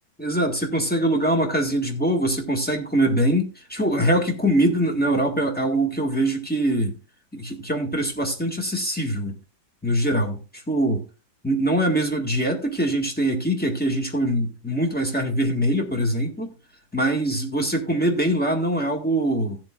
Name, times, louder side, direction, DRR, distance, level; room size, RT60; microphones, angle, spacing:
voice 1, 0.2-7.0 7.3-9.4 9.8-10.4 10.7-11.0 11.4-16.5 16.9-19.6, right 1 dB, 5° left, 1.6 m, -23 dB
16.0 x 7.5 x 2.4 m
omnidirectional pair, 2.1 m